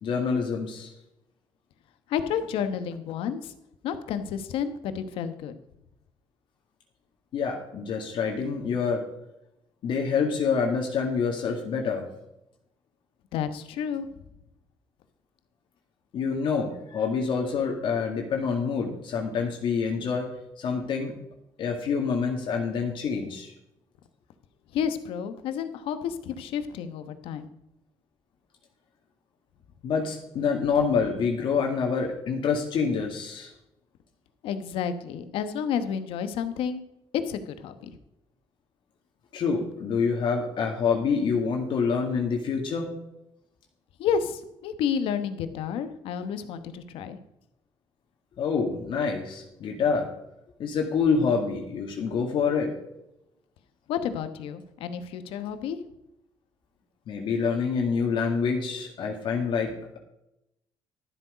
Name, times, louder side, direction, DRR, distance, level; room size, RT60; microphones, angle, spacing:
voice 1, 0.0-0.9 7.3-9.0 9.8-12.1 16.1-20.3 20.6-21.1 21.6-23.5 29.8-33.5 39.3-42.9 48.4-50.1 50.6-52.7 57.1-60.0, left 5 dB, 65° left, 1 dB, 2.0 m, -27 dB
voice 2, 2.1-3.5 3.8-5.5 13.3-14.1 24.7-27.5 34.4-36.8 37.3-38.0 44.0-47.2 53.9-55.8, left 7 dB, 85° left, 10 dB, 1.1 m, -30 dB
13.0 x 8.0 x 5.1 m, 0.85 s
cardioid pair, 100°, 9 cm